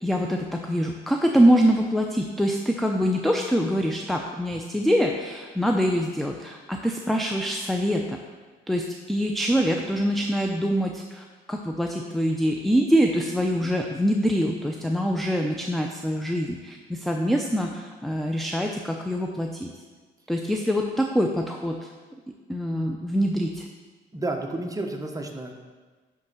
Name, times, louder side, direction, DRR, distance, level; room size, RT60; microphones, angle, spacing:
voice 1, 0.0-8.2 8.7-19.7 20.3-21.9 22.5-23.6, equal, ahead, 2 dB, 0.6 m, -24 dB
voice 2, 24.1-25.6, right 2 dB, 15° right, 3 dB, 1.1 m, -31 dB
9.8 x 3.8 x 6.2 m, 1.4 s
cardioid pair, 90°, 20 cm